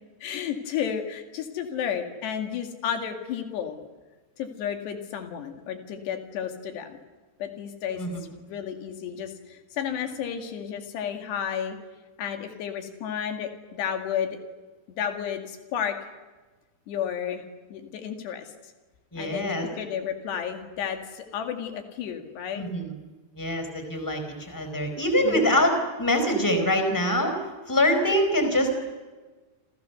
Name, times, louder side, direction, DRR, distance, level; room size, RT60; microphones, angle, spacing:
voice 1, 0.2-3.8 4.4-7.0 7.4-11.8 12.2-14.4 15.0-16.0 16.9-17.5 17.7-18.7 19.2-22.6 25.2-25.5, left 8 dB, 90° left, 5 dB, 4.3 m, -32 dB
voice 2, 19.1-19.7 22.6-22.9 23.3-27.3 27.7-28.7, equal, 5° left, 6 dB, 4.1 m, -24 dB
28.0 x 28.0 x 6.9 m, 1.3 s
omnidirectional pair, 4.7 m